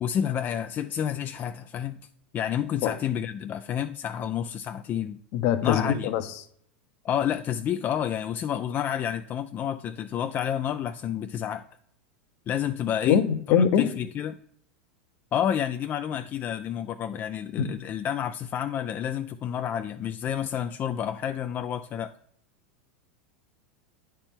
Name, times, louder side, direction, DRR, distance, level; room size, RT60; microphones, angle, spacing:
voice 1, 0.0-2.0 2.3-5.2 5.6-6.1 7.0-11.6 12.5-13.2 13.6-14.4 15.3-22.1, left 9 dB, 30° left, 0.4 m, -29 dB
voice 2, 5.3-6.2 13.1-13.8 17.6-17.7, left 8 dB, 55° left, 0.8 m, -22 dB
9.6 x 4.4 x 3.6 m
hypercardioid pair, 90°, 6 cm